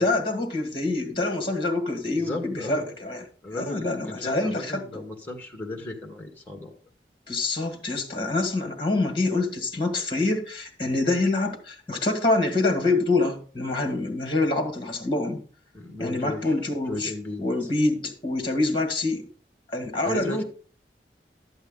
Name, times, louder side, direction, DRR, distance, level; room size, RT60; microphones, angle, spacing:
voice 1, 0.0-3.2 3.5-4.8 7.3-15.4 16.0-17.1 17.4-19.3 19.7-20.4, left 2 dB, 30° left, 5 dB, 1.7 m, -26 dB
voice 2, 2.1-2.9 3.4-6.8 15.7-16.5 16.9-17.5 20.0-20.4, left 2 dB, 10° left, 4 dB, 1.5 m, -35 dB
12.0 x 8.0 x 3.8 m, 0.40 s
head